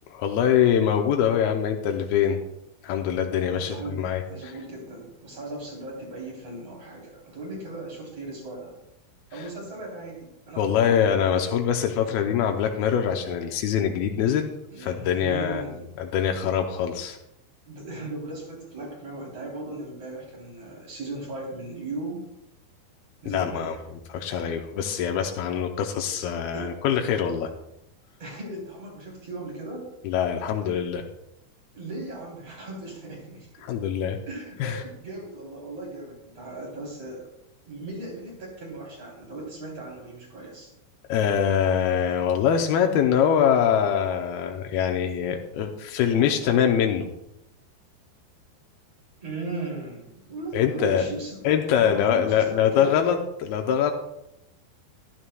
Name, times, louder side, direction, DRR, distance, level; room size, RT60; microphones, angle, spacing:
voice 1, 0.1-2.4 2.8-4.5 10.6-14.5 14.8-15.6 16.0-17.2 23.3-23.8 24.1-27.5 30.0-31.1 33.6-34.2 34.6-34.8 41.1-47.1 50.5-51.1 51.4-53.9, left 8 dB, 85° left, 3 dB, 2.2 m, -23 dB
voice 2, 3.6-8.7 9.3-10.9 14.7-15.9 17.7-22.3 23.2-23.8 26.5-26.7 28.2-29.9 31.7-33.7 34.3-37.3 37.7-40.7 49.2-51.4 51.8-52.9, right 2 dB, 35° right, -2 dB, 3.9 m, -37 dB
14.5 x 12.5 x 2.3 m, 0.85 s
omnidirectional pair, 5.1 m